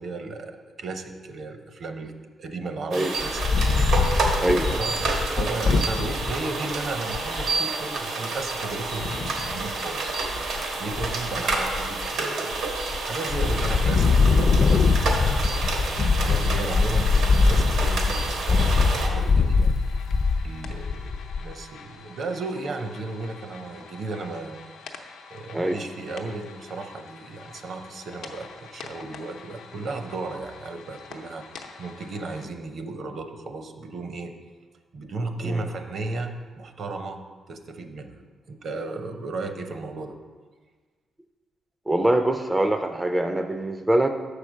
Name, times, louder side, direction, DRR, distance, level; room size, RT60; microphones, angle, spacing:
voice 1, 0.0-2.1 2.4-3.4 4.7-10.2 10.8-12.6 13.1-20.0 20.4-24.6 25.3-34.3 34.9-37.2 37.5-38.2 38.5-40.1, right 3 dB, 55° right, 7 dB, 0.7 m, -35 dB
sound 1, 2.9-19.1, right 3 dB, 85° right, 1.2 m, -29 dB
Wind, 3.2-6.3 6.8-6.9 7.1-7.5 9.0-9.6 10.1-10.6 10.9-12.1 12.5-13.0 13.3-21.5, left 4 dB, 45° left, 0.5 m, -22 dB
voice 2, 4.4-4.8 25.5-25.8 35.4-35.7 41.9-44.1, right 1 dB, 10° right, 6 dB, 0.3 m, -23 dB
sound 2, 17.7-32.5, left 5 dB, 85° left, 0.7 m, -46 dB
6.5 x 4.9 x 6.2 m, 1.4 s
cardioid pair, 130°, 0 cm